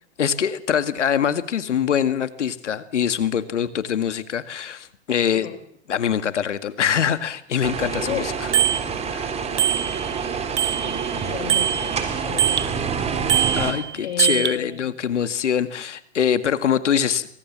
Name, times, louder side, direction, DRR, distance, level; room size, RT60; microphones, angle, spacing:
voice 1, 0.2-5.5 5.9-8.2 9.1-9.3 13.6-17.3, left 8 dB, 85° left, 11 dB, 2.0 m, -23 dB
sound 1, 7.6-13.7, right 6 dB, 20° right, 3.9 m, -27 dB
Bicycle bell, 8.5-8.8 9.6-10.2 10.6-12.7 13.3-14.6, right 10 dB, 80° right, 1.9 m, -22 dB
voice 2, 10.8-13.0 14.0-14.8, left 10 dB, 60° left, 10 dB, 5.6 m, -33 dB
24.5 x 24.5 x 7.5 m, 0.68 s
hypercardioid pair, 130°, 35 cm